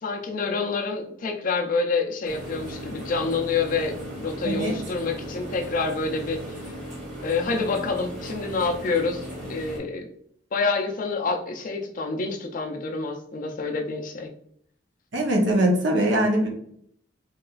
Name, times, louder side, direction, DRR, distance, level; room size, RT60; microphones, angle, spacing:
voice 1, 0.0-6.7 7.2-10.1 10.5-14.3, left 4 dB, 45° left, 3 dB, 0.4 m, -27 dB
sound 1, 2.2-9.8, equal, 40° right, 1.0 m, -37 dB
voice 2, 4.4-4.7 15.1-16.5, right 1 dB, 70° right, 0 dB, 0.7 m, -21 dB
2.9 x 2.3 x 2.3 m, 0.68 s
head